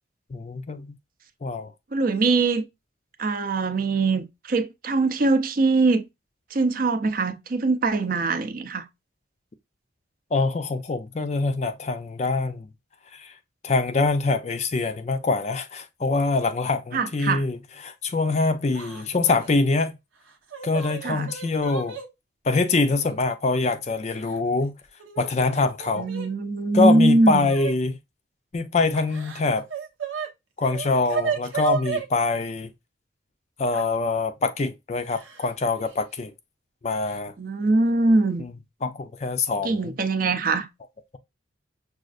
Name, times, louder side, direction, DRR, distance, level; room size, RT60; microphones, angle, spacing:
voice 1, 0.3-1.0 1.4-1.7 10.3-12.7 13.1-13.3 13.6-17.6 17.8-19.9 20.6-22.0 22.4-24.7 25.2-26.1 26.7-27.9 28.5-29.7 30.6-32.7 33.6-36.3 36.8-37.3 38.4-38.5 38.8-39.9, left 3 dB, 35° left, 0.4 m, -24 dB
voice 2, 1.9-2.6 3.2-6.0 6.5-8.9 16.9-17.4 21.0-21.3 26.0-27.5 37.4-38.5 39.6-40.7, right 3 dB, 45° right, 0.5 m, -22 dB
Yell / Crying sobbing, 18.7-19.1 19.4-19.5 20.3-22.1 23.0-23.1 24.1-24.7 25.0-26.3 27.5-27.8 28.9-30.3 30.6-32.1 33.7-33.9 35.1-35.5 35.8-36.0 37.1-37.2 37.6-37.9, right 6 dB, 90° right, 0.8 m, -32 dB
6.3 x 2.4 x 2.4 m
head